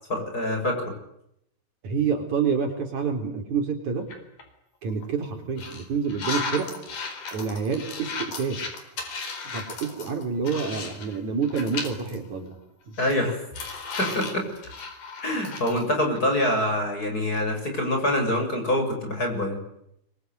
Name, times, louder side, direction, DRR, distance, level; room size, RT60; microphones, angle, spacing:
voice 1, 0.1-0.9 13.0-13.4 14.0-14.4 15.2-19.6, left 1 dB, 25° left, 4 dB, 7.1 m, -25 dB
voice 2, 1.8-4.1 4.8-6.7 7.3-8.6 9.4-12.5, right 5 dB, 55° right, 4 dB, 5.0 m, -28 dB
sound 1, 4.1-4.4 4.9-5.0 5.6-11.2 11.4-12.2 12.5-12.6 13.0-15.8, left 4 dB, 75° left, 6.0 m, -35 dB
26.0 x 24.0 x 9.5 m, 0.76 s
omnidirectional pair, 4.0 m